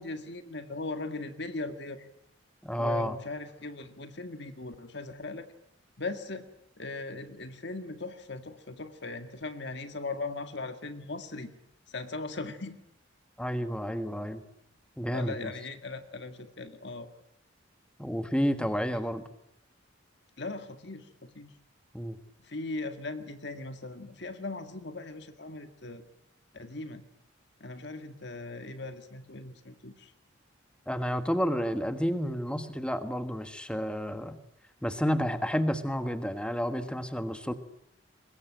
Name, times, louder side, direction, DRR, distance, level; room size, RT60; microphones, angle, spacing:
voice 1, 0.0-2.1 2.8-5.5 6.0-6.5 6.8-11.5 11.9-12.8 15.1-17.1 20.4-21.5 22.4-26.0 26.5-27.0 27.6-30.1, left 3 dB, 55° left, 8 dB, 1.8 m, -39 dB
voice 2, 2.6-3.1 13.4-14.4 15.0-15.5 18.0-19.2 21.9-22.2 30.9-34.4 34.8-37.5, equal, 5° left, 9 dB, 1.5 m, -30 dB
23.5 x 21.5 x 9.1 m, 0.80 s
head